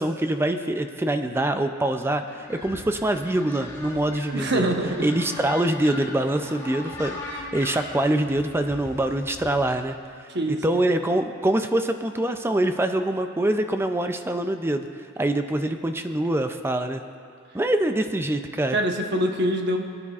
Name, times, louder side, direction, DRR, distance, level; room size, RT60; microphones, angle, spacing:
voice 1, 0.0-4.7 5.0-10.0 10.5-14.9 15.2-17.0 17.5-18.8, right 1 dB, 10° right, 7 dB, 0.4 m, -24 dB
sound 1, 2.3-9.7, left 2 dB, 15° left, 2.2 m, -39 dB
voice 2, 4.3-5.1 10.3-10.9 18.7-19.8, right 1 dB, 55° right, 3 dB, 1.0 m, -24 dB
23.5 x 9.8 x 2.4 m, 2.2 s
head